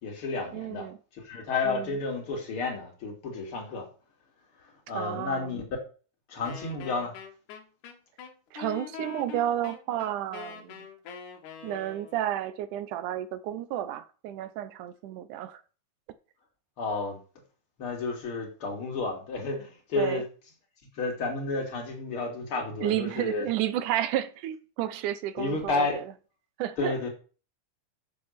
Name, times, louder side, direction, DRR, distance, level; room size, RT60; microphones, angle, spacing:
voice 1, 0.0-0.9 1.1-3.9 4.9-5.6 6.3-7.1 16.8-17.2 17.8-20.2 21.0-23.5 25.4-26.0 26.8-27.1, left 3 dB, 45° left, 3.4 m, -31 dB
voice 2, 0.5-1.0 1.6-2.0 4.9-5.6 8.5-10.9 11.6-15.6 20.0-20.2 22.8-26.1 26.6-26.9, right 12 dB, 80° right, 2.3 m, -31 dB
Wind instrument woodwind instrument, 6.4-12.3, left 7 dB, 80° left, 2.9 m, -43 dB
7.4 x 7.0 x 6.6 m
omnidirectional pair, 3.5 m